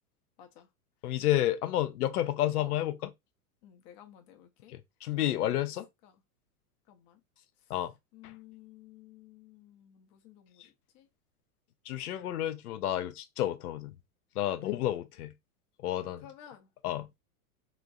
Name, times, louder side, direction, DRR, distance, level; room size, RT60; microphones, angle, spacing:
voice 1, 0.4-0.7 1.0-1.3 2.6-2.8 3.6-4.7 5.2-5.7 6.0-6.2 6.9-7.2 7.6-7.8 8.1-11.1 14.6-14.8 16.2-16.7, left 11 dB, 40° left, 0.8 m, -54 dB
voice 2, 1.0-3.1 4.7-5.9 7.7-7.9 11.9-13.9 14.4-15.3 15.8-16.2 16.8-17.1, left 13 dB, 90° left, 0.6 m, -30 dB
3.0 x 2.5 x 2.4 m
hypercardioid pair, 120°, 44 cm